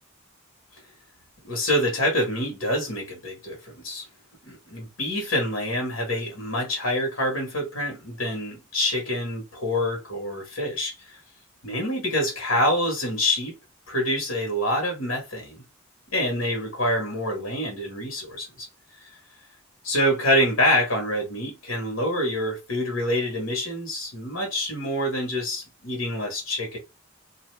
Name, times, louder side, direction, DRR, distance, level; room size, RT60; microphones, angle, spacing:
voice 1, 1.4-4.0 4.4-10.9 11.6-13.5 13.9-15.6 16.1-18.7 19.8-26.8, left 1 dB, 75° left, 1.6 m, -26 dB
2.8 x 2.5 x 3.3 m
head